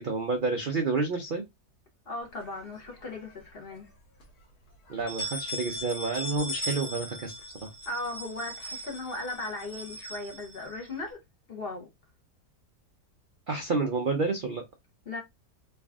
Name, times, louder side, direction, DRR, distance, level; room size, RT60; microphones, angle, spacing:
voice 1, 0.0-1.4 4.9-7.7 13.5-14.6, right 3 dB, 75° right, 0.4 m, -29 dB
voice 2, 2.1-3.9 7.9-11.2 11.5-11.9 15.1-15.2, left 2 dB, 45° left, 0.9 m, -37 dB
sound 1, 2.4-3.3 3.7-3.8 4.2-4.3 4.9-11.1, equal, 70° left, 1.7 m, -39 dB
3.4 x 2.4 x 3.4 m
omnidirectional pair, 1.7 m